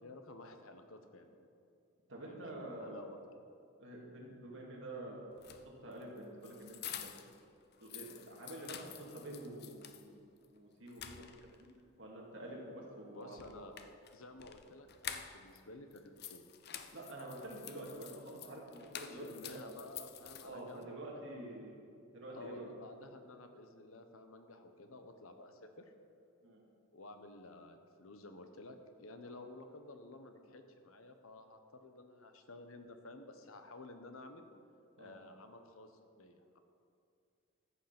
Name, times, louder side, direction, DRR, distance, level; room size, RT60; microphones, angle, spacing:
voice 1, 0.0-1.5 2.2-3.2 13.1-13.7 14.1-16.4 19.1-21.6 22.3-25.9 26.9-34.5 35.0-36.6, left 2 dB, 75° left, 7 dB, 1.1 m, -53 dB
voice 2, 2.1-3.0 3.8-7.1 7.8-11.3 12.0-13.6 16.9-19.6 20.4-21.8 22.1-22.7 26.4-26.6 29.3-29.4 35.0-35.2, right 1 dB, 60° right, -3 dB, 2.8 m, -48 dB
sound 1, 5.3-7.4 7.7-10.1 10.4-10.5 10.9-11.7 13.3-15.6 15.9-20.8, left 9 dB, 50° left, 0.6 m, -49 dB
14.0 x 8.2 x 6.0 m, 2.4 s
head